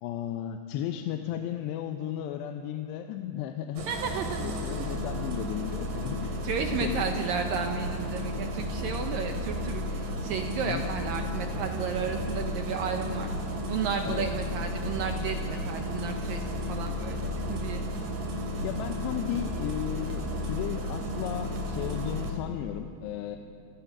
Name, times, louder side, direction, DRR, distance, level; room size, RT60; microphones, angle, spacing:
voice 1, 0.0-3.9 4.4-6.3 6.8-7.1 10.6-10.9 14.0-14.3 18.6-23.4, left 11 dB, 80° left, 6 dB, 2.9 m, -34 dB
Engine starting, 3.8-22.3, equal, 55° right, 3.9 m, -33 dB
voice 2, 3.9-4.4 4.8-4.9 6.4-17.9, right 6 dB, 70° right, 4 dB, 2.2 m, -33 dB
27.5 x 18.5 x 6.0 m, 2.4 s
omnidirectional pair, 5.0 m